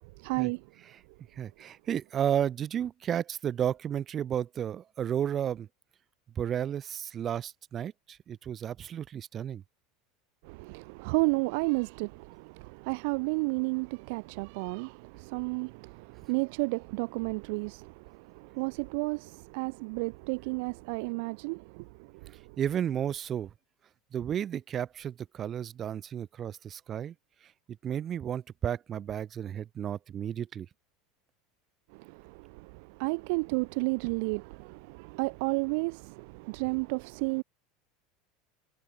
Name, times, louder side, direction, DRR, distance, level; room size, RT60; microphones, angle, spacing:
voice 1, 0.2-0.6 10.4-21.8 22.2-22.3 31.9-37.4, right 30 dB, 60° right, 1.5 m, -32 dB
voice 2, 1.4-5.7 6.4-9.6 22.6-23.5 24.1-27.1 27.8-30.7, right 9 dB, 35° right, 4.2 m, -32 dB
figure-of-eight pair, 75°, 0 cm